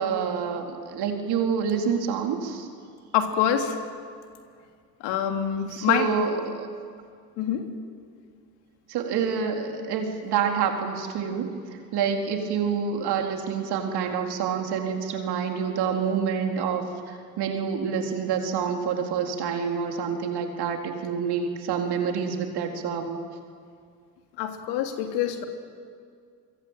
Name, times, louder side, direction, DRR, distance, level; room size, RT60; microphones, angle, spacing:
voice 1, 0.0-2.7 5.7-6.7 8.9-11.6 11.9-23.2, right 6 dB, 55° right, 3 dB, 4.3 m, -27 dB
voice 2, 3.1-3.8 5.0-6.1 7.4-7.7 24.4-25.4, left 9 dB, 65° left, 5 dB, 3.3 m, -25 dB
26.5 x 23.5 x 9.2 m, 2.2 s
hypercardioid pair, 70°, 45 cm